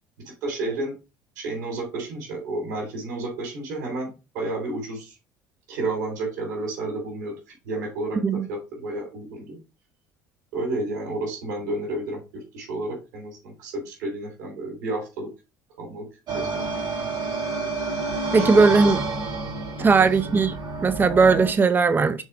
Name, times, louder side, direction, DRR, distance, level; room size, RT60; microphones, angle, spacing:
voice 1, 0.4-0.9 1.4-4.1 4.3-5.1 5.7-7.3 7.7-8.2 8.5-9.6 10.5-12.2 12.5-15.3 15.8-16.0 16.3-16.6 18.4-18.6 19.8-20.1, right 2 dB, 80° right, 3.6 m, -31 dB
sound 1, 16.3-21.5, right 3 dB, 50° right, 3.8 m, -29 dB
voice 2, 18.3-19.0 19.8-20.5 20.8-22.2, right 4 dB, 20° right, 0.6 m, -18 dB
6.3 x 4.3 x 4.7 m
hypercardioid pair, 70°, 10 cm